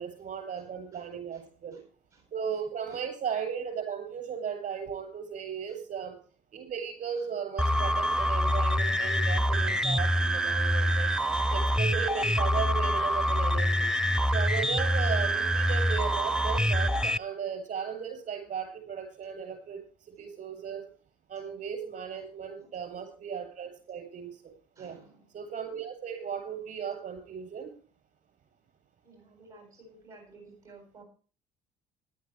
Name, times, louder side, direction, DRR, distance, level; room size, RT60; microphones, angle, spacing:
voice 1, 0.0-1.8 2.3-6.1 6.5-11.1 11.5-13.9 14.3-19.8 20.2-20.9 21.3-25.0 25.3-27.7, right 7 dB, 45° right, 7 dB, 8.0 m, -36 dB
sound 1, 7.6-17.2, equal, 5° right, 0.5 m, -26 dB
voice 2, 24.7-25.2 29.0-31.0, right 3 dB, 70° right, 1 dB, 7.8 m, -54 dB
20.0 x 11.5 x 3.3 m, 0.38 s
figure-of-eight pair, 55°, 19 cm